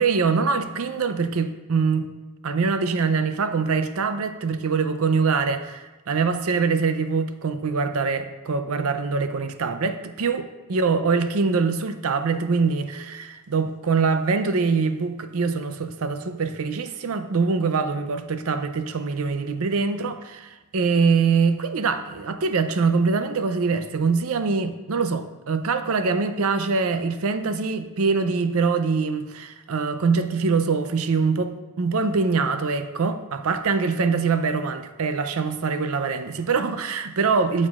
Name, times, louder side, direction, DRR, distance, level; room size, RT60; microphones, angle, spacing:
voice 1, 0.0-2.1 2.4-37.7, right 4 dB, 70° right, 9 dB, 0.6 m, -24 dB
12.5 x 7.4 x 2.4 m, 1.2 s
head